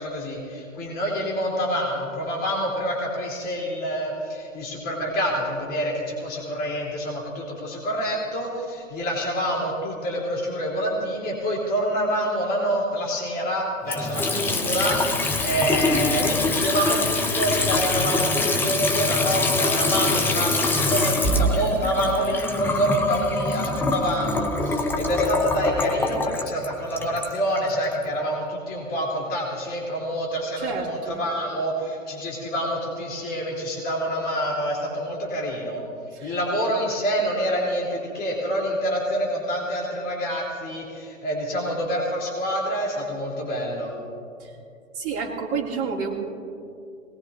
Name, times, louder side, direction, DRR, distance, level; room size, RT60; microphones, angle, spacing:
voice 1, 0.0-35.8 36.2-43.9, equal, 25° left, -3 dB, 3.7 m, -27 dB
Water tap faucet / Sink (filling or washing) / Trickle dribble, 13.8-28.0, left 2 dB, 5° left, 0.6 m, -24 dB
voice 2, 30.6-31.2 36.2-36.4 44.4-44.5 44.9-46.1, right 5 dB, 30° right, -4 dB, 2.9 m, -29 dB
24.0 x 20.0 x 2.8 m, 2.6 s
figure-of-eight pair, 115°, 39 cm